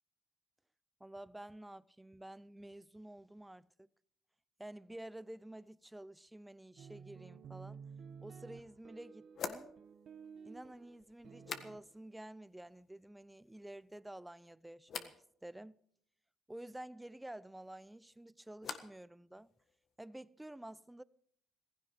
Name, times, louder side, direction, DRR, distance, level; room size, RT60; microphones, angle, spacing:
voice 1, 1.0-3.9 4.6-7.8 8.2-9.7 10.4-15.1 15.4-15.8 16.5-19.5 20.0-21.0, right 1 dB, 10° right, 0.5 m, -50 dB
sound 1, 6.8-11.8, right 6 dB, 55° right, 1.4 m, -53 dB
sound 2, 8.1-8.2 9.3-12.2 12.5-13.1 13.4-14.0 14.9-15.2 17.6-19.1 19.4-20.0, left 6 dB, 55° left, 1.6 m, -49 dB
16.0 x 16.0 x 5.1 m
cardioid pair, 85°, 0 cm